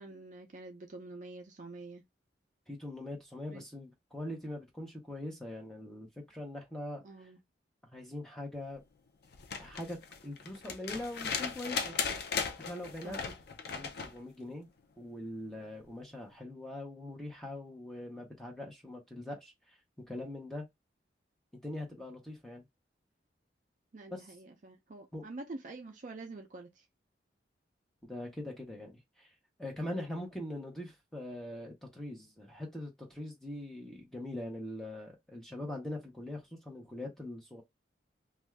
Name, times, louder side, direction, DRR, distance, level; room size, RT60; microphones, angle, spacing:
voice 1, 0.0-2.0 3.5-3.6 7.0-7.4 13.0-13.2 23.9-26.9, right 2 dB, 45° right, 0.4 m, -46 dB
voice 2, 2.7-7.3 7.9-8.8 9.6-10.0 10.2-11.9 12.6-13.2 13.7-14.7 15.0-19.8 20.1-20.7 21.5-22.6 24.1-24.2 25.1-25.2 28.0-29.3 29.6-37.6, left 1 dB, 5° left, 0.9 m, -42 dB
sound 1, 9.3-14.2 15.8-15.9, left 5 dB, 60° left, 0.5 m, -37 dB
2.6 x 2.3 x 3.2 m
head